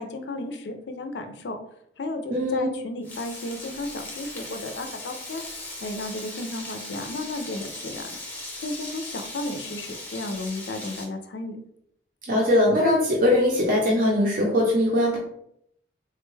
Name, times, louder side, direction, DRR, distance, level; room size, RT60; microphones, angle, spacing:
voice 1, 0.0-1.6 2.0-5.4 5.8-8.1 8.6-11.6, left 2 dB, 60° left, 6 dB, 0.4 m, -33 dB
voice 2, 2.3-2.7 12.3-15.2, left 1 dB, 45° right, -3 dB, 0.6 m, -21 dB
Frying (food), 3.0-11.0, left 2 dB, 10° left, 0.7 m, -38 dB
3.6 x 2.2 x 3.1 m, 0.72 s
head